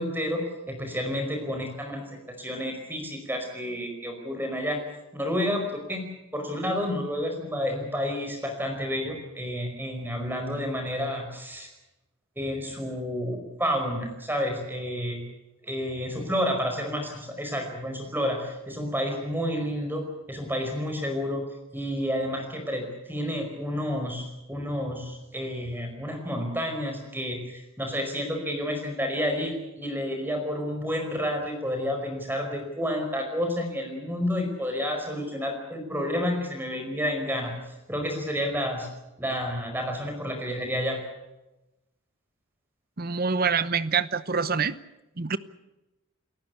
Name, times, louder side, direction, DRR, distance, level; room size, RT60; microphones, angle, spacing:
voice 1, 0.0-2.0 2.4-4.8 5.1-6.0 6.3-11.7 12.4-15.2 15.6-20.0 20.3-21.4 21.7-37.5 37.9-38.9 39.2-41.0, equal, 10° right, 4 dB, 5.1 m, -30 dB
voice 2, 43.0-44.8 45.2-45.4, right 5 dB, 45° right, 15 dB, 0.9 m, -26 dB
29.5 x 14.5 x 8.3 m, 0.99 s
head